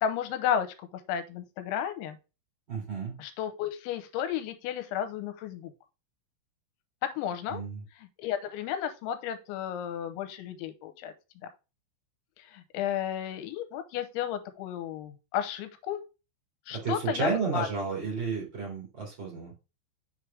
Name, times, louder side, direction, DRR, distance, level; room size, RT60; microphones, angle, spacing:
voice 1, 0.0-0.7 1.1-2.2 3.2-5.7 7.2-7.6 8.2-11.1 12.5-16.0 16.7-17.7, left 9 dB, 85° left, 8 dB, 3.0 m, -33 dB
voice 2, 2.7-3.1 7.5-7.8 16.7-19.5, right 4 dB, 35° right, -1 dB, 2.3 m, -32 dB
6.5 x 4.9 x 3.3 m, 0.29 s
omnidirectional pair, 5.4 m